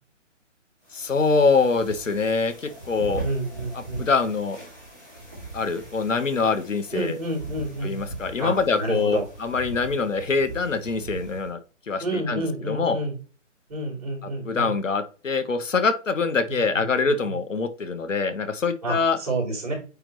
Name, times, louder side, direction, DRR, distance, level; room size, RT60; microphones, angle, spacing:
sound 1, 0.8-11.5, right 2 dB, 15° left, 1.7 m, -40 dB
voice 1, 0.9-3.2 3.7-4.6 5.5-7.2 7.8-11.6 11.9-13.0 14.5-19.2, left 4 dB, 80° left, 9 dB, 1.3 m, -24 dB
voice 2, 3.2-4.1 6.9-8.0 8.4-9.2 12.0-13.2 13.7-14.7 16.7-17.4 18.8-19.7, right 1 dB, 30° right, -1 dB, 3.4 m, -29 dB
8.9 x 3.4 x 3.1 m, 0.34 s
hypercardioid pair, 180°, 37 cm